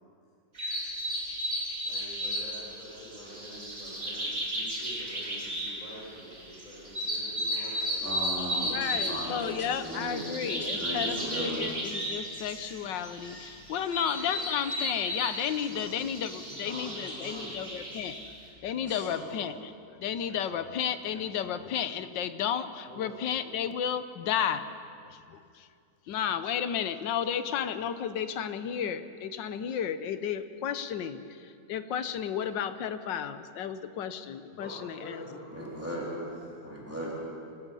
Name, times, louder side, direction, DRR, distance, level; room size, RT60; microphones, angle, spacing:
sound 1, 0.5-18.3, equal, 45° right, 4.6 m, -34 dB
voice 1, 1.8-8.0 13.9-14.5 16.5-17.8 22.9-23.5 34.5-36.6, equal, 25° left, -8 dB, 5.5 m, -46 dB
voice 2, 8.0-11.7 15.7-15.9 18.8-19.3 35.5-36.0 36.6-37.1, equal, 5° right, -5 dB, 3.8 m, -37 dB
voice 3, 8.6-18.2 18.6-19.7 20.0-24.7 25.0-25.7 26.1-35.3, left 8 dB, 85° left, 11 dB, 1.6 m, -33 dB
25.5 x 18.5 x 5.5 m, 2.4 s
omnidirectional pair, 1.9 m